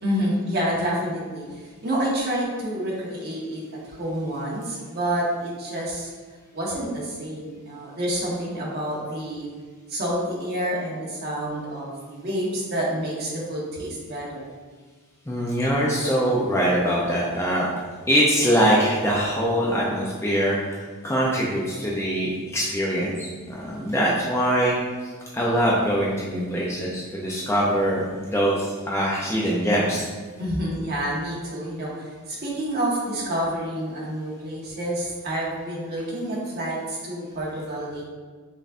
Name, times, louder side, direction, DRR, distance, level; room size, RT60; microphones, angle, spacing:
voice 1, 0.0-3.6 3.9-6.1 6.5-9.5 9.9-14.5 30.4-38.0, right 1 dB, 50° right, -5 dB, 1.3 m, -28 dB
voice 2, 15.3-17.7 18.1-24.7 25.3-30.1, equal, 15° left, -5 dB, 0.5 m, -23 dB
5.2 x 4.0 x 2.5 m, 1.5 s
head